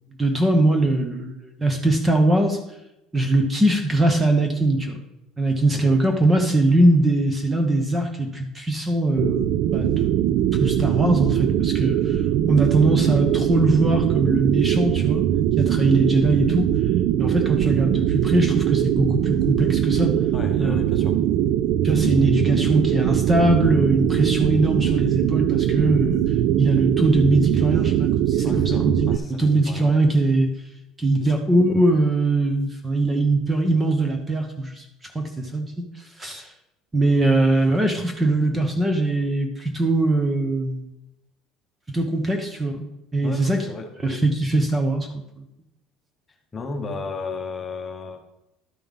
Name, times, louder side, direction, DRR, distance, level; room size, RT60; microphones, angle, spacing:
voice 1, 0.2-2.6 3.1-5.0 5.4-10.1 10.6-12.2 12.5-15.2 15.6-16.7 17.2-20.1 20.6-20.7 21.8-26.2 26.6-30.5 31.0-35.8 36.2-36.5 36.9-40.9 41.9-42.8 43.1-43.7 44.0-45.4, right 2 dB, 15° right, 5 dB, 0.9 m, -21 dB
sound 1, 9.2-29.2, right 11 dB, 60° right, 0.3 m, -21 dB
voice 2, 20.3-21.2 28.4-30.0 31.2-31.4 43.2-43.9 46.5-48.2, left 3 dB, 25° left, 4 dB, 1.1 m, -34 dB
12.0 x 5.5 x 3.7 m, 0.86 s
cardioid pair, 140°, 0 cm